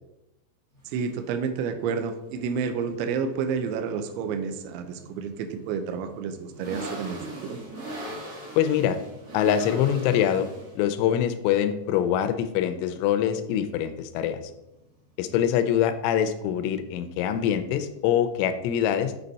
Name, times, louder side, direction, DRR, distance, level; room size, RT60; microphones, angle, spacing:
sound 1, 0.7-18.7, right 1 dB, 50° right, 1.3 m, -43 dB
voice 1, 0.9-7.6, right 6 dB, 80° right, 8 dB, 2.9 m, -30 dB
voice 2, 8.6-9.0 9.3-10.5 10.8-14.4 15.2-19.1, left 9 dB, 85° left, 10 dB, 3.1 m, -24 dB
7.7 x 5.7 x 4.1 m, 0.90 s
omnidirectional pair, 5.6 m